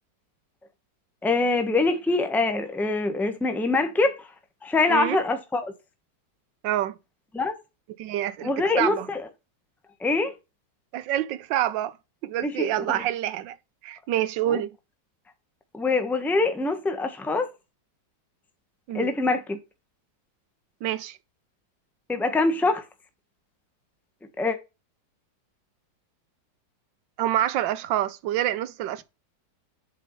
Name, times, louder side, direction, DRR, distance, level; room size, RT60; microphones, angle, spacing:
voice 1, 1.2-4.2 4.6-5.7 7.3-7.5 8.4-9.2 10.0-10.3 12.4-13.0 14.5-14.6 15.7-17.5 18.9-19.6 22.1-22.8 24.4-24.6, left 3 dB, ahead, 1.2 m, -24 dB
voice 2, 4.9-5.2 6.6-6.9 8.0-9.1 10.9-12.0 12.2-13.6 13.8-14.8 18.9-19.1 20.8-21.2 27.2-29.0, right 12 dB, 80° right, 1.4 m, -27 dB
7.6 x 5.2 x 5.5 m
omnidirectional pair, 2.0 m